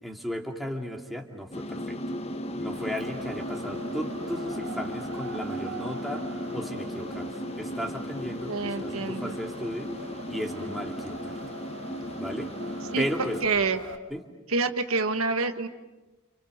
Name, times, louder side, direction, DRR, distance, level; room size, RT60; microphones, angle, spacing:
voice 1, 0.0-2.0 2.6-6.2 6.5-9.9 10.3-11.4 12.2-12.5 13.0-13.4 14.1-14.2, equal, ahead, 1 dB, 2.4 m, -35 dB
sound 1, 1.5-13.4, left 1 dB, 30° left, 1.1 m, -36 dB
Wind, 2.7-14.0, right 3 dB, 60° right, 1.9 m, -43 dB
voice 2, 8.5-9.4 12.9-13.0 13.4-13.8 14.5-15.7, right 4 dB, 75° right, 7 dB, 1.5 m, -27 dB
29.0 x 27.5 x 6.6 m, 1.2 s
head